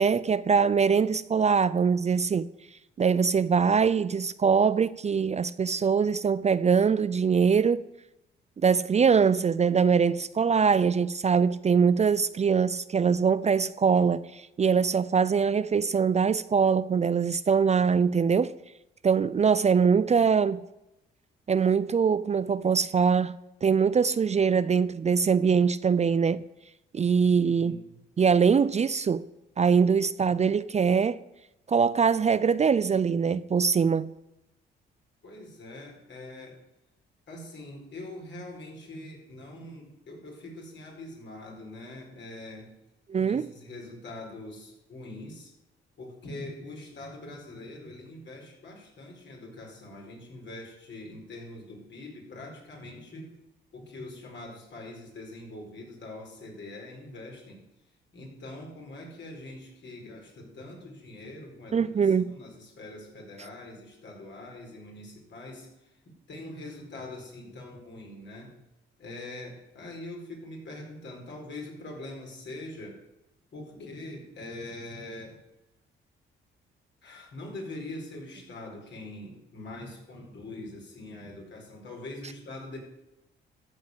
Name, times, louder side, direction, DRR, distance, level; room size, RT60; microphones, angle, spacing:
voice 1, 0.0-2.5 3.0-7.8 8.6-18.5 19.0-20.6 21.5-26.5 26.9-27.8 28.2-29.3 29.6-31.2 31.7-34.1 43.1-43.5 61.7-62.4, right 6 dB, 30° right, 0.5 m, -23 dB
voice 2, 27.4-28.0 35.2-36.6 37.3-42.7 43.2-45.5 46.0-53.4 53.7-57.6 58.1-66.0 66.3-68.6 69.0-73.0 73.5-75.4 77.0-82.8, left 2 dB, 60° left, 4.8 m, -43 dB
13.5 x 5.4 x 8.0 m
supercardioid pair, 60°, 21 cm